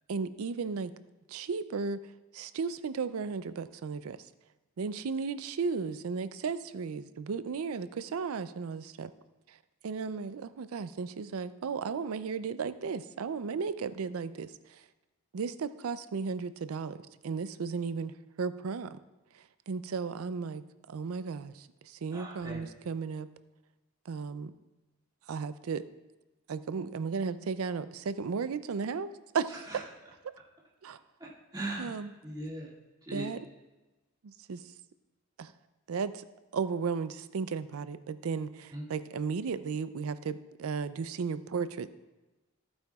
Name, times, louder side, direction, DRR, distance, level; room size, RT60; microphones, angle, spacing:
voice 1, 0.1-0.9 1.3-2.0 2.3-4.2 4.8-9.1 9.8-14.5 15.3-17.0 17.2-19.0 19.7-20.6 20.9-23.3 24.1-24.5 25.3-25.9 26.5-29.6 30.8-31.0 31.8-32.1 33.1-33.4 34.2-34.6 35.4-35.5 35.9-36.2 36.5-41.9, right 5 dB, 85° right, 14 dB, 0.4 m, -35 dB
voice 2, 22.1-22.6 29.7-29.8 31.2-32.0 32.2-32.7 33.0-33.3 38.7-38.8, right 2 dB, 20° right, -6 dB, 2.0 m, -39 dB
14.5 x 8.8 x 2.3 m, 1.1 s
head